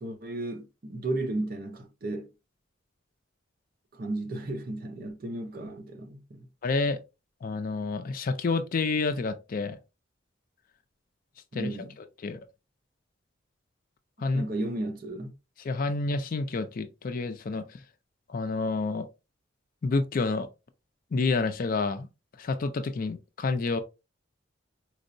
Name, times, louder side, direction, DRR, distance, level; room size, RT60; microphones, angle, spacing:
voice 1, 0.0-2.3 3.9-6.5 11.5-12.0 14.3-15.3, right 2 dB, 50° right, 0.7 m, -34 dB
voice 2, 6.6-7.0 7.4-9.8 11.5-11.7 12.2-12.4 14.2-14.5 15.6-17.7 18.3-19.1 19.8-20.5 21.1-22.1 22.4-23.8, left 3 dB, 45° left, 0.4 m, -28 dB
4.4 x 2.0 x 2.5 m
head